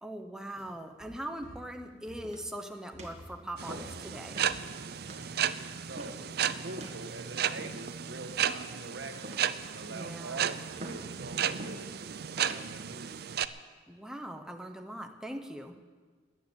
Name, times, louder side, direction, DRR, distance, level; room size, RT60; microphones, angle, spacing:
voice 1, 0.0-4.5 9.9-10.4 13.9-15.8, right 1 dB, 5° right, 4 dB, 1.0 m, -41 dB
sound 1, 0.6-4.8, equal, 75° left, 6.3 m, -52 dB
sound 2, 2.2-2.6 3.0-3.2 3.7-4.0 4.3-4.6 5.1-5.3 6.0-6.3 6.8-7.0 7.6-8.0 8.5-8.8 9.2-9.6 10.0-10.3 10.8-11.1 11.6-11.8 12.4-12.7 13.3-13.6, right 1 dB, 40° right, 2.0 m, -46 dB
sound 3, 3.6-13.5, right 8 dB, 60° right, 0.5 m, -34 dB
voice 2, 5.9-13.2, right 2 dB, 85° right, 6 dB, 1.5 m, -45 dB
14.0 x 9.6 x 9.7 m, 1.5 s
head